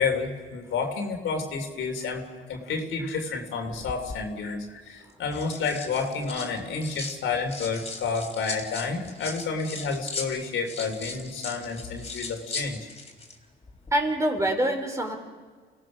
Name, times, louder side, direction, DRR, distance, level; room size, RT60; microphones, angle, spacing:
voice 1, 0.0-2.2 2.5-12.8, left 4 dB, 75° left, 4 dB, 3.2 m, -30 dB
sound 1, 3.7-4.2 5.1-7.2 7.5-13.4 13.6-13.9, left 3 dB, 30° left, 3.5 m, -38 dB
voice 2, 13.9-15.1, right 1 dB, 15° right, 3 dB, 3.9 m, -25 dB
29.0 x 17.5 x 6.2 m, 1.5 s
cardioid pair, 90°, 20 cm